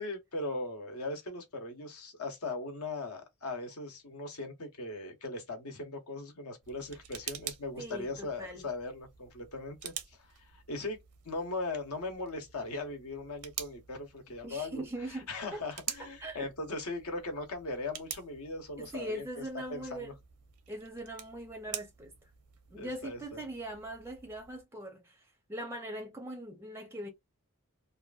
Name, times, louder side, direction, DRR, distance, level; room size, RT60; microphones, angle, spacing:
voice 1, 0.0-10.3 10.5-11.0 11.2-19.3 19.7-20.1 22.7-23.4, left 2 dB, 70° left, 0.9 m, -39 dB
sound 1, 6.6-24.6, right 10 dB, 85° right, 0.7 m, -48 dB
voice 2, 7.8-8.7 14.4-15.6 16.2-16.5 18.8-20.1 20.7-22.1 22.7-27.1, right 1 dB, 10° right, 0.5 m, -41 dB
2.7 x 2.5 x 2.3 m
head